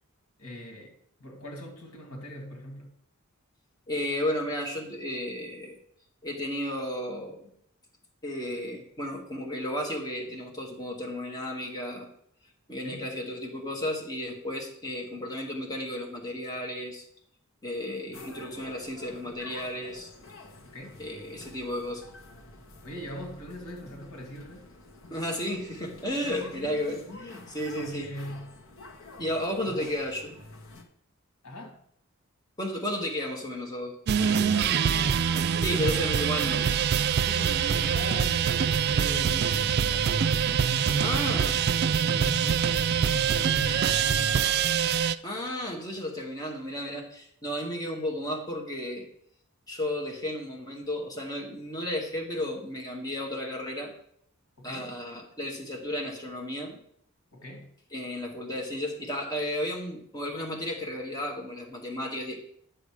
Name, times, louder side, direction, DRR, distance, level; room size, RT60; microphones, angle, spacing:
voice 1, 0.4-0.9 1.2-2.9 12.8-13.1 20.6-21.0 22.8-24.7 26.2-26.8 27.8-28.5 29.6-29.9 31.4-31.8 34.2-35.3 37.2-40.3 40.6-41.7 42.0-44.6 54.6-55.0 57.3-57.7, equal, 85° left, 2.6 m, -40 dB
voice 2, 3.9-5.8 6.2-7.5 8.2-12.1 12.7-17.1 17.6-20.1 21.0-22.0 25.1-28.1 29.2-30.4 32.6-34.6 35.6-36.7 41.0-41.6 45.2-49.1 49.7-53.9 54.6-56.8 57.9-62.4, left 1 dB, 20° left, 1.9 m, -33 dB
sound 1, 18.1-30.8, left 2 dB, 65° left, 1.3 m, -49 dB
sound 2, 34.1-45.2, right 7 dB, 45° right, 0.3 m, -25 dB
9.8 x 6.8 x 4.9 m
head